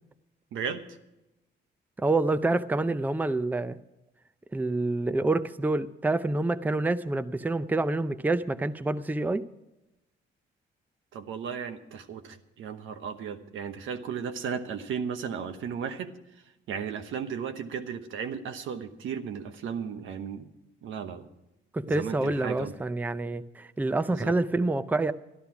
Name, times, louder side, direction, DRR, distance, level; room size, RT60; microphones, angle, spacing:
voice 1, 0.5-0.9 11.1-16.1 16.7-20.5 20.8-21.3 21.9-22.7 24.1-24.4, right 7 dB, 80° right, 8 dB, 1.1 m, -35 dB
voice 2, 2.0-3.8 4.5-9.4 21.7-25.1, right 2 dB, 10° right, 13 dB, 0.5 m, -27 dB
13.0 x 11.0 x 5.9 m, 0.95 s
cardioid pair, 90°, 20 cm